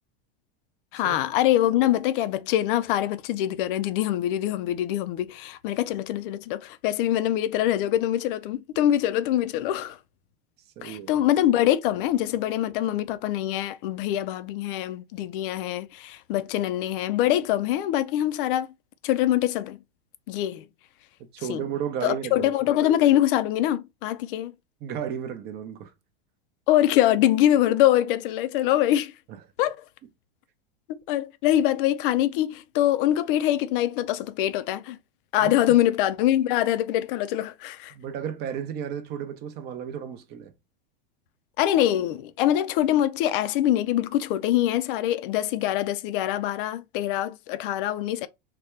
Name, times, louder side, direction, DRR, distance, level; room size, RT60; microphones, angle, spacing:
voice 1, 0.9-10.0 10.8-18.7 19.0-19.8 20.3-20.7 21.5-21.6 22.0-24.5 26.7-29.1 29.6-29.8 30.9-35.0 35.3-37.9 41.6-48.3, left 12 dB, 60° left, 0.5 m, -24 dB
voice 2, 10.8-11.2 21.3-22.5 24.8-25.9 29.3-29.4 35.4-35.6 37.9-40.5, right 9 dB, 35° right, 0.7 m, -33 dB
4.1 x 2.2 x 3.2 m
supercardioid pair, 145°, 30 cm